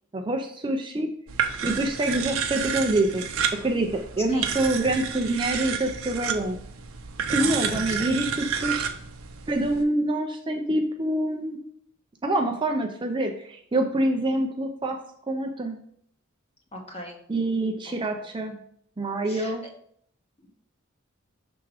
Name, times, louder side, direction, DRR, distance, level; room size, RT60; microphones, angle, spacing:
voice 1, 0.1-1.1 1.6-3.3 3.6-6.6 7.3-8.8 9.5-11.6 12.2-15.0 15.3-15.8 17.3-18.6 19.0-19.6, right 1 dB, 20° right, 3 dB, 0.5 m, -26 dB
sound 1, 1.3-9.8, right 7 dB, 70° right, 0.7 m, -30 dB
voice 2, 7.4-8.0 16.7-17.2 18.1-18.2 19.3-19.7 20.4-20.5, equal, 30° left, 1 dB, 1.3 m, -40 dB
6.0 x 3.6 x 4.7 m, 0.65 s
head